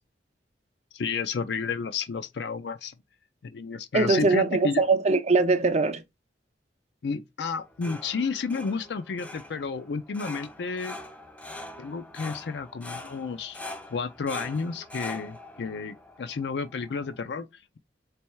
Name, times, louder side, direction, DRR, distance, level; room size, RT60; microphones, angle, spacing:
voice 1, 0.9-2.9 3.4-4.8 7.0-11.0 11.8-13.6 13.9-17.8, left 5 dB, 70° left, 0.4 m, -31 dB
voice 2, 3.9-6.0, right 3 dB, 40° right, 0.6 m, -22 dB
sound 1, 7.5-17.2, left 1 dB, 10° left, 0.5 m, -43 dB
3.4 x 3.0 x 4.5 m
head